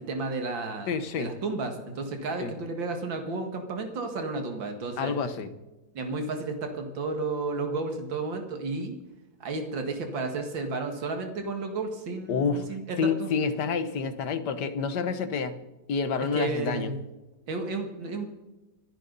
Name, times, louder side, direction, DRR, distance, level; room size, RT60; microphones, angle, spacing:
voice 1, 0.0-5.1 5.9-9.0 9.4-13.3 16.2-17.0 17.5-18.3, right 3 dB, 85° right, 4 dB, 2.6 m, -32 dB
voice 2, 0.9-1.3 2.4-2.5 5.0-5.5 12.3-12.7 13.0-15.6 15.9-16.9, left 5 dB, 65° left, 11 dB, 1.7 m, -28 dB
27.0 x 10.5 x 4.0 m, 1.1 s
omnidirectional pair, 2.0 m